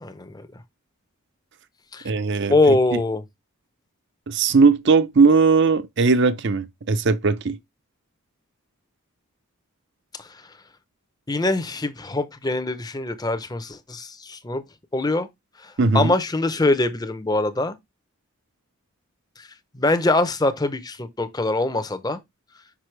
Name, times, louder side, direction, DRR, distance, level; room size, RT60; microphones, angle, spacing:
voice 1, 0.0-0.5 1.9-2.1 2.5-3.2 10.2-10.3 11.3-14.6 14.9-15.3 15.6-17.8 19.4-19.5 19.7-22.2, left 2 dB, 20° left, 0.6 m, -23 dB
voice 2, 2.0-3.0 4.3-7.6 15.8-16.1, right 4 dB, 55° right, 0.6 m, -19 dB
6.1 x 5.4 x 3.2 m
head